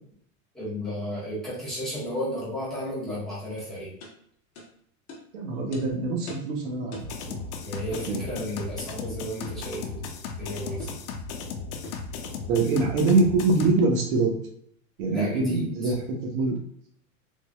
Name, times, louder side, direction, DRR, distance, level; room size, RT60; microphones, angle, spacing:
voice 1, 0.5-3.9 7.6-10.9 15.1-15.9, equal, ahead, -11 dB, 1.2 m, -33 dB
sound 1, 3.6-3.7 4.0-4.1 4.5-4.7 5.1-5.2 5.7-5.8 6.3-6.5 6.9-7.2 7.9-8.1 9.4-9.7 10.8-11.0 11.8-12.1, left 2 dB, 40° left, 0.9 m, -41 dB
voice 2, 5.3-7.4 8.1-8.2 12.5-14.4 15.0-16.6, right 3 dB, 75° right, 1 dB, 1.1 m, -24 dB
sound 2, 7.0-13.7, left 5 dB, 80° left, 0.7 m, -36 dB
3.8 x 3.1 x 2.3 m, 0.70 s
supercardioid pair, 175°, 42 cm